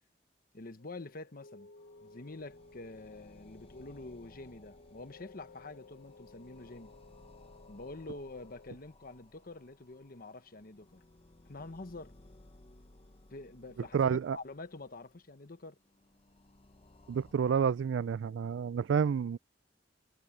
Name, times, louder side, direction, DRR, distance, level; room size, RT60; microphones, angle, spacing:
voice 1, 0.5-1.7 2.0-6.9 7.7-11.0 11.4-12.1 13.3-15.8, left 2 dB, 50° left, 1.2 m, -47 dB
sound 1, 0.8-8.8, left 3 dB, 70° left, 0.9 m, -57 dB
sound 2, 1.8-17.3, left 2 dB, 30° left, 1.0 m, -60 dB
voice 2, 13.8-14.4 17.1-19.4, right 7 dB, 80° right, 0.3 m, -29 dB
head